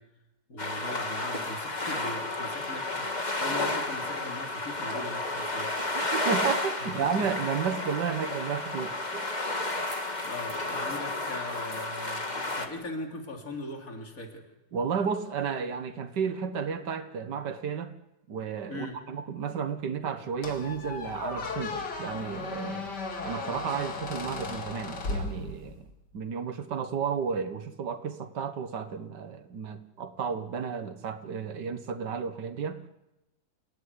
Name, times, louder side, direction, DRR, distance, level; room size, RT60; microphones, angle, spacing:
voice 1, 0.5-5.7 6.9-7.3 9.7-14.4 18.7-19.0, left 2 dB, 55° left, 3 dB, 3.7 m, -40 dB
sound 1, 0.6-12.7, left 2 dB, 25° left, 2.2 m, -32 dB
voice 2, 6.0-9.3 14.7-17.9 18.3-22.9 23.2-25.9 26.1-32.8, right 6 dB, 85° right, 9 dB, 2.0 m, -32 dB
Squeak, 20.4-25.9, left 3 dB, 80° left, 3.0 m, -36 dB
29.0 x 17.0 x 9.8 m, 0.92 s
omnidirectional pair, 1.8 m